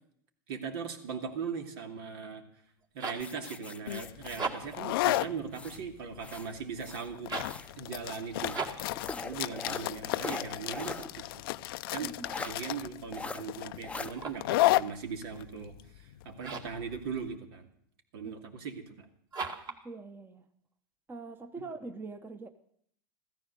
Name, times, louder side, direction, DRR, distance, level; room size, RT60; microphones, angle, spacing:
voice 1, 0.5-2.5 2.9-7.3 7.8-8.6 9.2-11.4 11.9-12.1 12.4-17.7 18.1-19.1, right 6 dB, 75° right, 4 dB, 2.7 m, -39 dB
sound 1, 2.7-3.3 4.2-4.9 7.2-7.6 8.5-8.9 14.0-14.5 16.4-16.8 19.3-19.8, right 4 dB, 35° right, 2.2 m, -38 dB
sound 2, 3.2-5.8 6.2-7.7 8.4-11.1 11.4-11.5 12.2-12.5 13.1-13.4 13.8-14.1, left 3 dB, 10° left, 0.7 m, -41 dB
sound 3, 3.9-17.3, left 17 dB, 75° left, 0.5 m, -33 dB
voice 2, 12.0-12.4 18.2-18.3 19.8-20.5 21.1-22.5, right 3 dB, 15° right, 8 dB, 1.0 m, -43 dB
15.0 x 14.0 x 6.8 m, 0.66 s
supercardioid pair, 120°, 12 cm